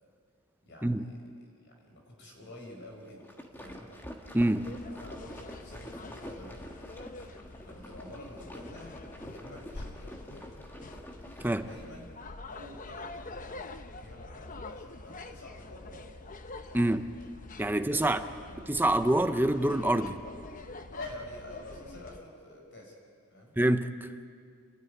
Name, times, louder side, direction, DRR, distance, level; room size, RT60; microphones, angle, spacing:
voice 1, 0.6-1.2 1.6-3.2 3.5-3.9 4.8-6.7 7.5-10.5 11.3-12.1 12.5-16.1 16.7-16.9 17.7-18.7 20.9-23.0 23.3-23.5, left 1 dB, 55° left, 1 dB, 5.7 m, -48 dB
sound 1, 3.0-11.9, equal, 10° left, 1.6 m, -47 dB
voice 2, 4.3-4.8 11.4-11.6 16.7-17.2 17.6-18.2 18.7-20.2 23.6-24.1, right 1 dB, 10° right, 10 dB, 0.5 m, -26 dB
sound 2, 4.6-22.2, left 2 dB, 35° left, 0.8 m, -46 dB
29.5 x 12.5 x 9.6 m, 2.2 s
head